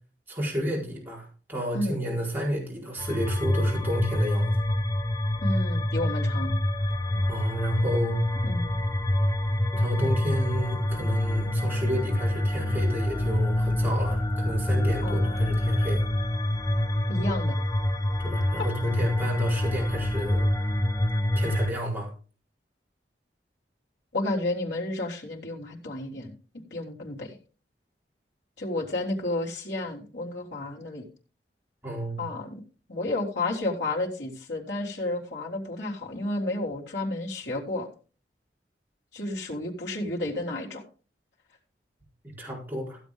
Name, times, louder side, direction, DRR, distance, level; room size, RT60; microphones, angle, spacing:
voice 1, 0.3-4.6 7.1-8.2 9.7-16.0 18.2-20.5 21.3-22.1 31.8-32.3 42.2-43.0, equal, 10° right, -4 dB, 4.3 m, -32 dB
sound 1, 3.0-21.7, left 1 dB, 20° left, 1.0 m, -26 dB
voice 2, 5.4-6.5 8.4-8.8 15.0-15.5 17.1-17.6 24.1-26.3 26.7-27.4 28.6-31.0 32.2-32.6 32.9-37.9 39.1-40.9, left 2 dB, 85° left, -2 dB, 3.6 m, -31 dB
16.0 x 8.2 x 3.7 m, 0.36 s
head